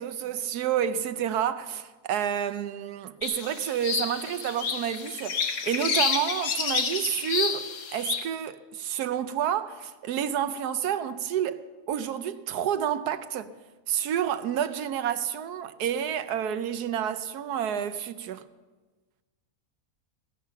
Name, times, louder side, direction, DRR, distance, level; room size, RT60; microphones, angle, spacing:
voice 1, 0.0-13.5 13.9-18.5, right 9 dB, 85° right, 1.3 m, -29 dB
sound 1, 3.2-8.3, left 6 dB, 55° left, 1.2 m, -29 dB
16.5 x 10.5 x 6.9 m
omnidirectional pair, 1.6 m